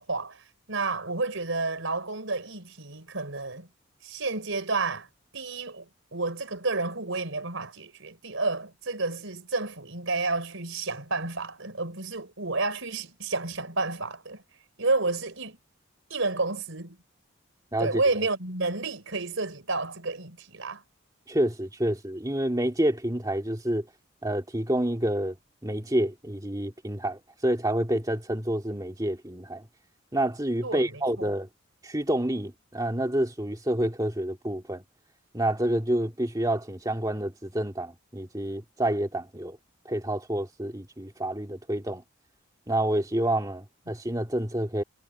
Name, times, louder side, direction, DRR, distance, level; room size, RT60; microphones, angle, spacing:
voice 1, 0.0-3.7 4.0-5.1 5.3-14.4 14.8-15.6 16.1-17.0 17.8-20.8 30.6-31.3, right 3 dB, 65° right, 4.3 m, -30 dB
voice 2, 21.3-23.9 24.2-25.4 25.6-29.7 30.1-31.5 31.8-34.8 35.3-39.6 39.8-42.0 42.7-44.8, right 1 dB, 15° right, 2.4 m, -28 dB
head